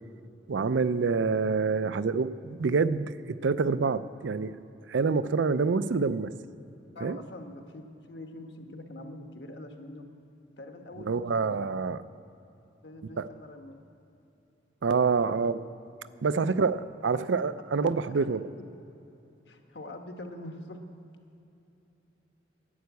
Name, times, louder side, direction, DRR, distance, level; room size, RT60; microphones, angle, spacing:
voice 1, 0.5-4.6 4.9-6.3 7.0-7.2 11.0-12.0 13.2-13.3 14.8-15.6 16.2-18.5, right 4 dB, 85° right, 14 dB, 0.5 m, -27 dB
voice 2, 6.9-7.8 8.1-10.1 10.6-11.7 12.8-13.7 15.3-15.4 16.4-16.6 18.1-18.3 19.5-20.8, left 1 dB, 65° left, 5 dB, 1.3 m, -44 dB
11.0 x 10.5 x 8.2 m, 2.9 s
head